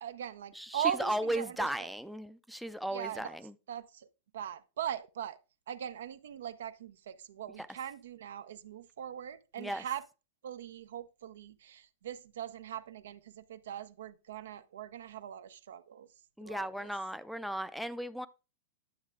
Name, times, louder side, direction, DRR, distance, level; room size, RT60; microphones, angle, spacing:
voice 1, 0.0-1.9 2.9-3.4 3.7-4.1 4.3-5.4 5.7-10.0 10.4-16.1 16.4-16.9, right 10 dB, 70° right, 0.5 m, -40 dB
voice 2, 0.6-3.5 9.6-9.8 16.4-18.3, right 1 dB, ahead, 0.4 m, -36 dB
9.4 x 7.1 x 2.4 m
hypercardioid pair, 100°, 0 cm